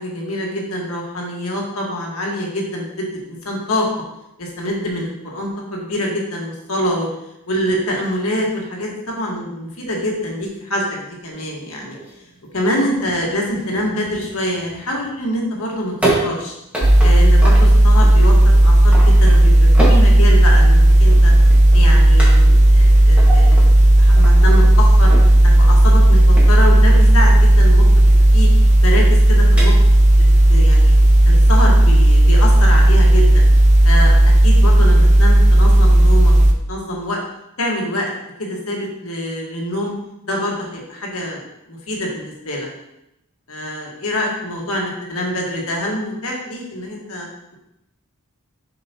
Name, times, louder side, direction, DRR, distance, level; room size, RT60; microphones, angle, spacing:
voice 1, 0.0-3.9 4.4-7.1 7.5-12.0 12.5-15.9 16.2-16.5 17.0-21.3 21.7-23.7 24.0-25.1 25.5-28.5 28.8-29.8 30.5-30.9 31.2-33.4 33.8-36.3 36.7-37.2 37.6-38.1 38.4-39.9 40.3-42.7 43.5-47.3, left 1 dB, 75° left, -2 dB, 1.6 m, -25 dB
sound 1, 11.3-30.2, right 1 dB, 5° right, 1.6 m, -30 dB
sound 2, 16.8-36.5, right 1 dB, 30° right, 0.5 m, -11 dB
7.0 x 5.4 x 2.9 m, 0.85 s
head